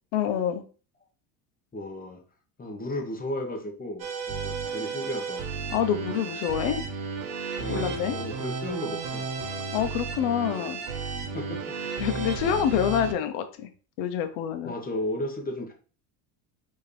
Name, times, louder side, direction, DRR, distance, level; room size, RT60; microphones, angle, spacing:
voice 1, 0.1-0.6 5.7-6.8 7.7-8.2 9.7-10.8 12.0-13.7 14.0-14.7, left 9 dB, 80° left, 8 dB, 0.8 m, -27 dB
voice 2, 1.7-2.2 2.6-5.6 7.6-9.3 11.3-11.7 12.4-12.7 14.6-15.7, left 1 dB, 20° left, 2 dB, 1.2 m, -34 dB
sound 1, 4.0-13.1, right 5 dB, 60° right, 1.1 m, -33 dB
4.7 x 2.9 x 3.3 m, 0.38 s
supercardioid pair, 105°, 46 cm